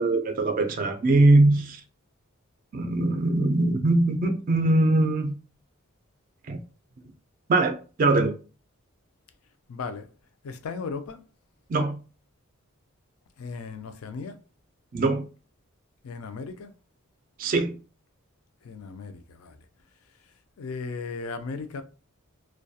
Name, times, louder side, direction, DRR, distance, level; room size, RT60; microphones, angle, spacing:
voice 1, 0.0-1.8 2.7-5.4 6.5-6.6 7.5-8.3 11.7-12.0 14.9-15.3 17.4-17.8, right 2 dB, 40° right, 0.3 m, -22 dB
voice 2, 9.7-10.1 10.4-11.2 13.4-14.4 16.0-16.7 18.6-19.6 20.2-21.8, left 4 dB, 85° left, 0.4 m, -36 dB
2.2 x 2.2 x 2.7 m
head